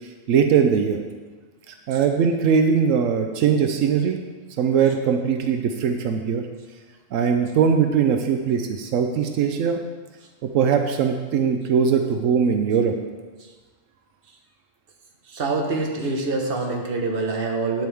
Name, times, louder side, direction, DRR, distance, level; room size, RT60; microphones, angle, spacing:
voice 1, 0.3-1.0 1.9-4.2 4.6-6.4 7.1-9.8 10.4-13.0, right 6 dB, 85° right, 5 dB, 1.0 m, -20 dB
voice 2, 15.3-17.9, right 3 dB, 50° right, 1 dB, 1.3 m, -25 dB
9.2 x 7.7 x 3.5 m, 1.3 s
omnidirectional pair, 1.3 m